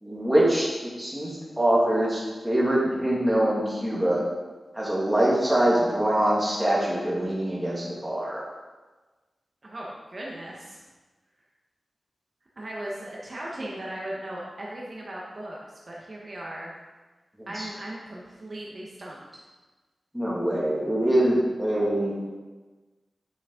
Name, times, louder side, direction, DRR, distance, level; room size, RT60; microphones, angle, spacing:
voice 1, 0.0-1.3 1.6-4.2 4.7-8.4 17.4-17.7 20.1-22.1, right 1 dB, 5° right, -5 dB, 2.2 m, -24 dB
voice 2, 9.6-10.8 12.6-15.6 15.9-16.8 17.5-19.4, right 1 dB, 40° right, -4 dB, 1.3 m, -37 dB
8.8 x 6.4 x 3.8 m, 1.3 s
wide cardioid pair, 110°, 0 cm